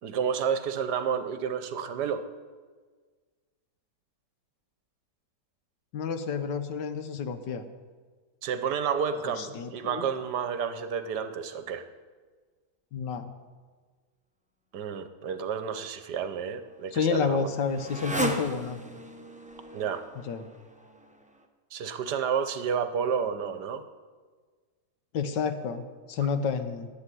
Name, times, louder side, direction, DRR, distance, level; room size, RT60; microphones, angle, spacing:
voice 1, 0.0-2.2 8.4-11.8 14.7-17.5 19.7-20.0 21.7-23.8, right 7 dB, 75° right, 10 dB, 1.5 m, -30 dB
voice 2, 5.9-7.6 9.2-10.1 12.9-13.3 16.9-18.8 20.2-20.5 25.1-25.8 26.1-26.9, left 6 dB, 85° left, 9 dB, 1.7 m, -30 dB
Motorcycle, 16.0-21.5, right 2 dB, 5° right, 0.7 m, -37 dB
12.0 x 8.1 x 9.9 m, 1.5 s
omnidirectional pair, 1.8 m